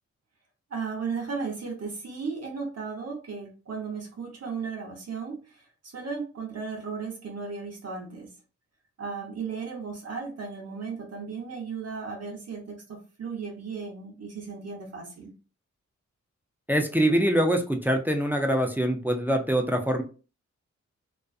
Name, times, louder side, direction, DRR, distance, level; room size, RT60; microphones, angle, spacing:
voice 1, 0.7-8.3 9.0-15.3, right 5 dB, 60° right, 0.8 m, -35 dB
voice 2, 16.7-20.0, right 1 dB, 5° right, 0.4 m, -24 dB
2.4 x 2.4 x 2.3 m
wide cardioid pair, 90°, 29 cm